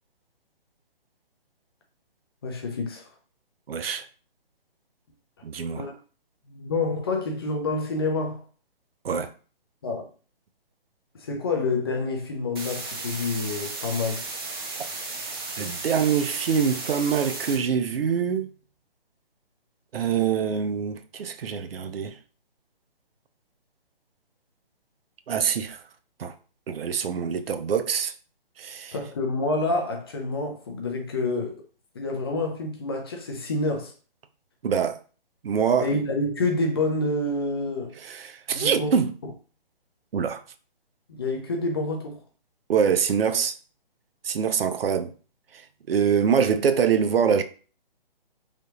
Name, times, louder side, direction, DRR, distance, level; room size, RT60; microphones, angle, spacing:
voice 1, 2.4-3.0 5.8-5.9 6.5-8.4 9.8-10.1 11.2-14.2 28.9-31.6 31.9-33.9 35.8-38.0 38.5-38.9 39.2-39.3 41.2-42.2, left 2 dB, 25° left, 0.5 m, -28 dB
voice 2, 3.7-4.0 5.4-5.9 9.0-9.3 15.6-18.5 19.9-22.1 25.3-25.8 26.2-26.3 26.7-28.1 28.6-28.9 34.6-35.0 35.4-35.9 38.1-39.1 40.1-40.4 42.7-43.5 44.2-45.1 45.9-47.4, right 7 dB, 80° right, 0.5 m, -24 dB
sound 1, 12.6-17.6, right 3 dB, 25° right, 0.5 m, -34 dB
3.4 x 2.8 x 2.4 m
hypercardioid pair, 150°, 29 cm